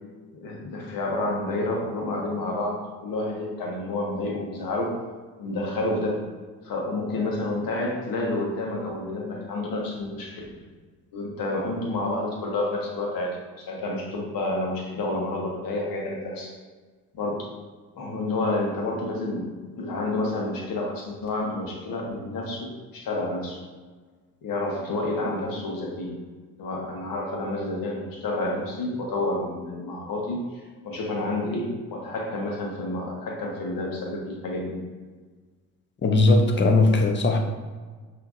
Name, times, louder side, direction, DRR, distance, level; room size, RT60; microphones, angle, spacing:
voice 1, 0.3-5.0 5.4-6.2 6.6-10.6 11.1-16.6 17.1-17.5 18.0-23.7 24.4-26.2 26.6-34.8, left 2 dB, 50° left, -1 dB, 1.3 m, -29 dB
voice 2, 36.0-37.4, left 2 dB, 25° left, 3 dB, 0.6 m, -19 dB
5.6 x 2.9 x 2.6 m, 1.4 s
figure-of-eight pair, 50°, 45 cm